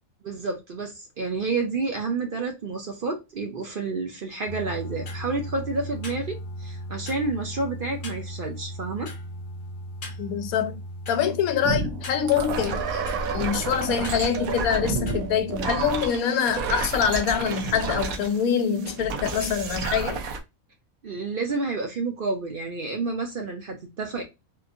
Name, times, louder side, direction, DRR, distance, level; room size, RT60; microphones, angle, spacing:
voice 1, 0.2-9.1 21.0-24.2, right 3 dB, 55° right, 0.7 m, -30 dB
sound 1, 4.5-15.9, equal, 45° left, 0.9 m, -37 dB
voice 2, 10.2-10.8 11.1-13.0 13.3-20.2, left 8 dB, 90° left, 1.1 m, -25 dB
sound 2, 11.6-20.4, right 4 dB, 85° right, 1.1 m, -30 dB
3.6 x 2.6 x 2.5 m
omnidirectional pair, 1.5 m